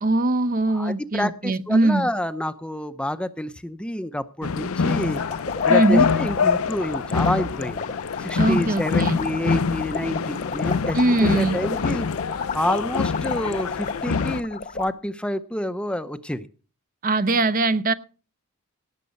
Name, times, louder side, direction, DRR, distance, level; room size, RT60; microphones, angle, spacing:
voice 1, 0.0-2.1 5.7-6.1 8.4-9.2 10.9-11.6 17.0-17.9, right 2 dB, 40° right, 0.6 m, -21 dB
voice 2, 0.7-5.2 5.7-7.8 8.2-12.1 12.5-16.5, left 1 dB, 5° left, 0.6 m, -28 dB
sound 1, 4.4-14.4, left 5 dB, 70° left, 0.6 m, -25 dB
sound 2, 4.9-14.9, left 5 dB, 35° left, 0.9 m, -33 dB
18.0 x 7.4 x 5.3 m
head